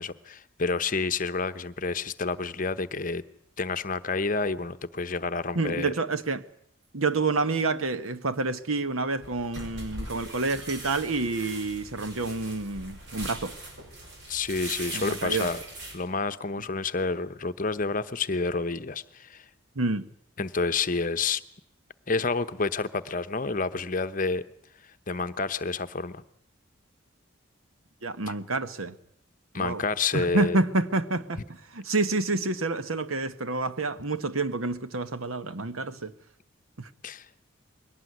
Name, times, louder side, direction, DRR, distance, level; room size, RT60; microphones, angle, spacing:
voice 1, 0.0-3.2 3.6-5.9 14.3-15.6 15.9-19.5 20.4-21.4 22.1-24.4 25.1-26.2 29.5-30.6 37.0-37.3, left 4 dB, 40° left, 0.9 m, -29 dB
voice 2, 5.5-6.4 6.9-13.6 14.9-15.5 19.7-20.1 28.0-28.9 29.6-29.8 30.1-36.1 36.8-36.9, right 3 dB, 85° right, 1.3 m, -28 dB
sound 1, 9.2-15.9, right 1 dB, 55° right, 5.9 m, -40 dB
22.5 x 18.0 x 9.5 m
head